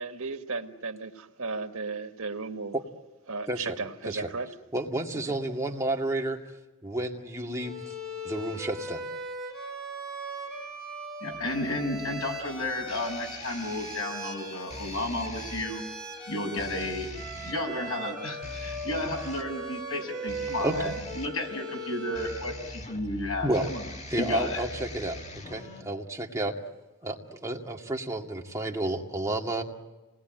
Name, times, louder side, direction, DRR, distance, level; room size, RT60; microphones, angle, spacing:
voice 1, 0.0-2.8 3.3-4.5, right 4 dB, 85° right, 6 dB, 1.8 m, -35 dB
voice 2, 3.5-3.8 4.1-4.3 4.7-6.4 6.8-7.8 8.2-9.0 20.6-20.9 23.4-23.7 24.1-26.6 27.0-29.6, right 1 dB, 15° right, 0 dB, 2.1 m, -31 dB
Bowed string instrument, 7.6-22.5, right 1 dB, ahead, 6.8 m, -39 dB
voice 3, 11.2-15.8 16.3-23.9 24.2-24.6, left 1 dB, 80° left, 2 dB, 6.5 m, -33 dB
sound 1, 11.3-25.8, left 1 dB, 30° left, 1.9 m, -43 dB
29.0 x 20.5 x 9.1 m, 1.1 s
head